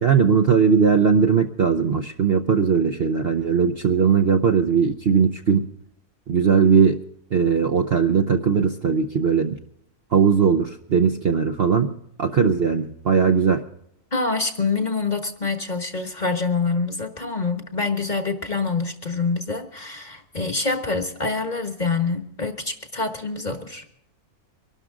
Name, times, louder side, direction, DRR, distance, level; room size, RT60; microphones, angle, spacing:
voice 1, 0.0-5.7 6.3-7.0 7.3-9.6 10.1-13.6, right 6 dB, 50° right, 6 dB, 0.8 m, -19 dB
voice 2, 14.1-23.9, left 4 dB, 30° left, 7 dB, 1.3 m, -26 dB
24.0 x 12.5 x 3.7 m, 0.75 s
omnidirectional pair, 1.6 m